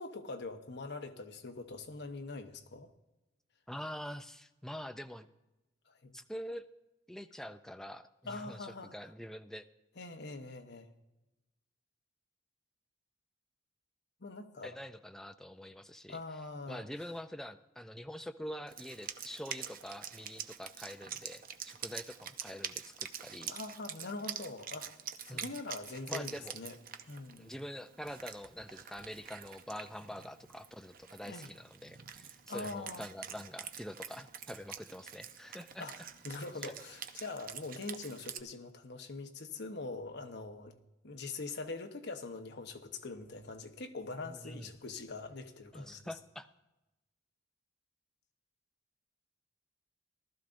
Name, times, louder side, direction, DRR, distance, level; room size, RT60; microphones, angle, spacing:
voice 1, 0.0-2.9 5.9-6.1 8.3-8.9 10.0-10.9 14.2-14.7 16.1-16.9 23.5-24.9 25.3-26.7 27.1-27.5 31.3-31.5 32.5-33.1 35.8-36.0 36.2-40.7 41.0-46.0, left 3 dB, 60° left, 6 dB, 1.0 m, -43 dB
voice 2, 3.7-5.3 6.1-6.7 7.1-9.7 14.6-16.2 16.7-23.5 25.3-25.5 26.1-26.6 27.4-35.9 36.6-36.7 44.2-44.7 45.7-46.5, equal, 5° left, 9 dB, 0.4 m, -45 dB
Wind instrument woodwind instrument, 18.7-38.4, right 8 dB, 45° right, 0.6 m, -46 dB
18.5 x 13.0 x 2.6 m, 1.0 s
head